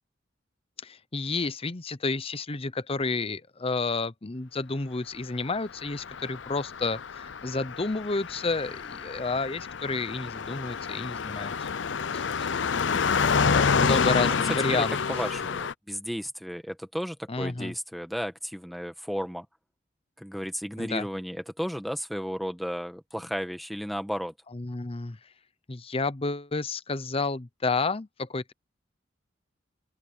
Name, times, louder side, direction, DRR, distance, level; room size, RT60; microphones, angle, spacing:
voice 1, 0.8-11.7 12.1-12.5 13.5-14.9 17.3-17.7 20.8-21.1 24.5-25.2 25.7-28.5, left 3 dB, 30° left, 0.8 m, -30 dB
Car passing by, 5.8-15.7, left 5 dB, 75° left, 0.6 m, -28 dB
voice 2, 14.7-19.4 20.2-24.3, equal, ahead, 1.4 m, -34 dB
open air
head